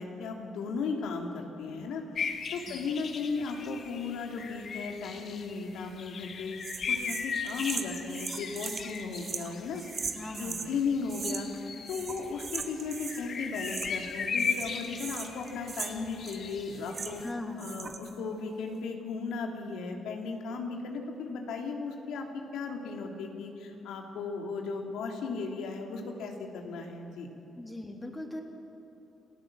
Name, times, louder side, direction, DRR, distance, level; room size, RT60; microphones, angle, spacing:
voice 1, 0.0-2.0 2.5-6.6 6.9-9.8 10.4-17.2 17.6-27.3, left 4 dB, 85° left, 2 dB, 2.9 m, -36 dB
sound 1, 2.2-17.3, left 6 dB, 55° left, 1.8 m, -38 dB
sound 2, 6.6-10.7 11.1-11.6 11.9-13.3 13.5-14.1 14.4-17.3 17.6-18.1, right 5 dB, 45° right, 1.8 m, -39 dB
voice 2, 10.1-10.7 17.2-17.7 27.6-28.4, left 1 dB, 15° left, 2 dB, 3.3 m, -40 dB
27.5 x 16.5 x 7.5 m, 2.8 s
cardioid pair, 90°, 0 cm